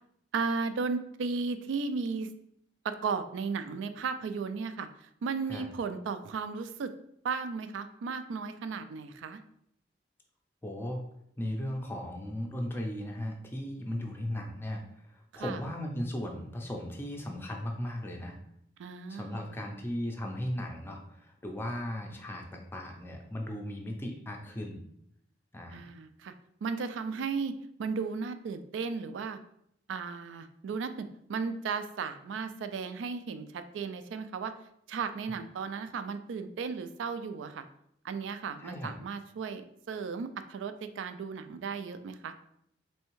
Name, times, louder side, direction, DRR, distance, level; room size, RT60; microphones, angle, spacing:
voice 1, 0.3-2.3 2.8-6.9 7.2-9.4 15.3-15.6 18.8-19.5 25.7-26.3 26.6-29.4 29.9-34.5 34.9-37.6 38.0-42.3, right 5 dB, 80° right, 10 dB, 0.3 m, -35 dB
voice 2, 10.6-11.0 11.4-14.8 15.1-18.4 19.1-24.8 25.5-25.9 38.6-38.9, left 1 dB, 10° left, 1 dB, 0.4 m, -37 dB
3.4 x 3.2 x 3.1 m, 0.73 s
head